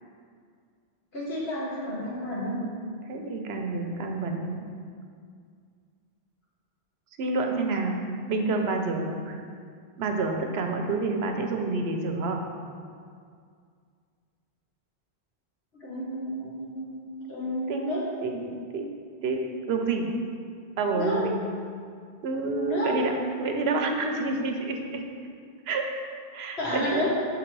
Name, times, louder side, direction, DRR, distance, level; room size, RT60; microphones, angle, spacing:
voice 1, 1.1-2.6 15.8-18.0 20.9-21.2 22.6-22.9 26.6-27.1, equal, 75° left, -7 dB, 1.8 m, -31 dB
voice 2, 3.1-4.6 7.2-8.0 8.3-9.4 10.0-12.4 17.7-17.8 18.2-18.8 19.2-20.1 20.8-21.4 22.2-25.0 25.7-25.9 26.3-27.1, right 3 dB, 90° right, 3 dB, 0.9 m, -28 dB
6.7 x 3.9 x 4.6 m, 2.2 s
omnidirectional pair, 1.0 m